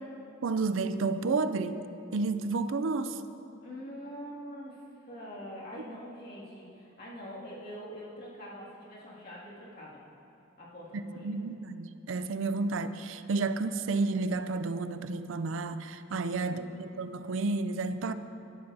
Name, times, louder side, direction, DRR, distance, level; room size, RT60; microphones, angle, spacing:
voice 1, 0.4-1.8 2.1-3.2 11.0-18.1, right 3 dB, 70° right, 11 dB, 0.5 m, -31 dB
voice 2, 3.6-10.0 10.6-11.4 16.2-17.3, equal, 50° left, -7 dB, 2.4 m, -45 dB
14.5 x 11.5 x 2.8 m, 2.9 s
head